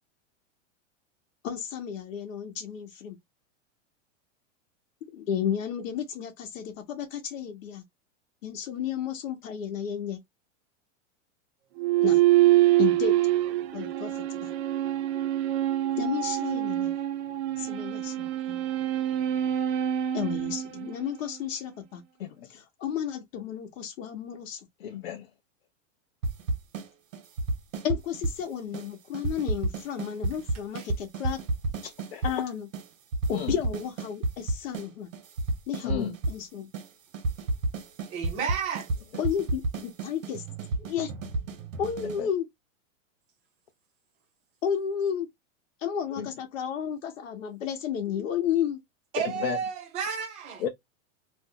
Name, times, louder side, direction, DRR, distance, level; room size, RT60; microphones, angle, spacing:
voice 1, 1.4-3.2 5.1-7.8 8.4-10.2 12.0-12.2 12.8-13.2 13.7-14.5 16.0-16.9 17.6-18.6 20.1-22.0 22.5-24.7 27.8-31.4 32.2-32.7 33.3-35.1 35.7-36.7 39.2-40.4 40.8-41.1 41.8-42.5 44.6-45.3 45.8-48.8, left 8 dB, 80° left, 0.9 m, -32 dB
sound 1, 11.8-21.4, right 14 dB, 60° right, 0.6 m, -25 dB
voice 2, 24.8-25.3 31.8-32.3 33.3-33.6 35.8-36.2 42.2-42.3 46.2-46.3 49.2-49.6 50.6-50.7, left 9 dB, 50° left, 0.5 m, -34 dB
sound 2, 26.2-26.9 27.1-28.4 28.7-28.9 29.1-32.4 32.7-32.9 33.1-34.9 35.1-36.4 36.7-36.9 37.1-42.2, right 2 dB, 90° right, 1.2 m, -31 dB
voice 3, 38.1-38.9 49.1-50.6, right 7 dB, 15° right, 0.5 m, -32 dB
2.6 x 2.1 x 3.7 m
supercardioid pair, 165°, 38 cm